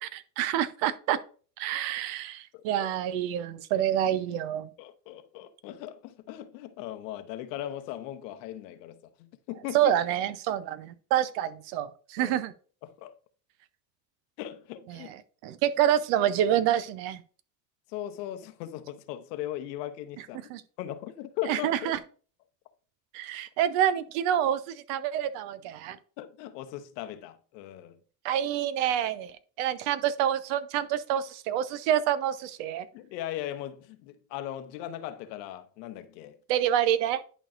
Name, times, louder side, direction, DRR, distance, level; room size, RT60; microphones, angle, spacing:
voice 1, 0.0-1.2 1.6-4.7 9.7-12.5 14.9-15.2 15.4-17.2 20.5-20.6 21.5-22.0 23.1-26.0 28.2-29.3 29.6-32.9 36.5-37.2, right 11 dB, 65° right, 0.8 m, -27 dB
voice 2, 2.5-2.9 4.8-9.9 12.2-12.4 12.8-13.1 14.4-15.1 17.9-20.5 20.8-22.0 26.2-28.0 32.9-36.4, left 12 dB, 75° left, 0.9 m, -38 dB
11.0 x 4.4 x 2.5 m
hypercardioid pair, 75°, 50 cm